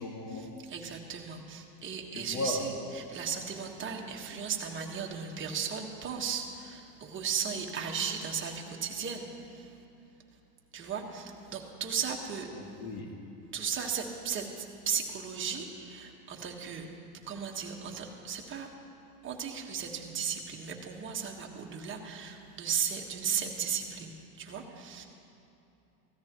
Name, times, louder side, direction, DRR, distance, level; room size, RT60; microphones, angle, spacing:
voice 1, 0.0-0.5 2.1-2.7 12.5-13.1, left 2 dB, 50° left, 0 dB, 2.0 m, -36 dB
voice 2, 0.6-2.7 3.1-9.3 10.7-12.5 13.5-14.5 14.8-16.9 17.3-18.7 19.2-25.0, right 7 dB, 25° right, 0 dB, 1.5 m, -35 dB
17.0 x 13.5 x 3.1 m, 2.8 s
supercardioid pair, 115°, 47 cm